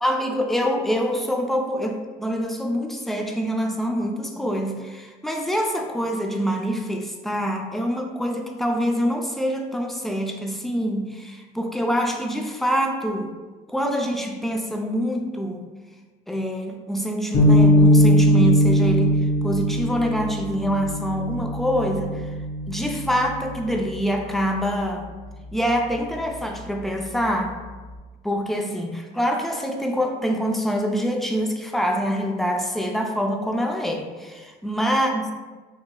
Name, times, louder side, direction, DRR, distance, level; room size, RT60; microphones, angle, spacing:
voice 1, 0.0-13.3 13.7-15.7 16.3-19.2 19.4-22.3 22.7-25.1 25.5-27.6 28.2-34.4 34.6-35.2, equal, ahead, 2 dB, 0.3 m, -25 dB
sound 1, 17.3-23.8, equal, 65° left, 1.2 m, -20 dB
3.7 x 2.9 x 2.2 m, 1.3 s
cardioid pair, 110°, 17 cm